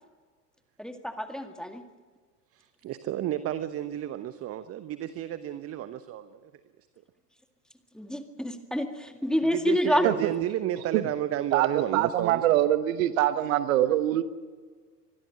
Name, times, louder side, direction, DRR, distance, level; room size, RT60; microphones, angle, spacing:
voice 1, 0.8-1.8 7.9-10.1, left 1 dB, ahead, 7 dB, 2.0 m, -28 dB
voice 2, 2.5-6.5 9.5-12.5, right 12 dB, 30° right, 13 dB, 1.0 m, -31 dB
voice 3, 11.5-14.2, right 13 dB, 55° right, 13 dB, 1.3 m, -24 dB
25.0 x 21.0 x 6.4 m, 1.5 s
figure-of-eight pair, 80°, 48 cm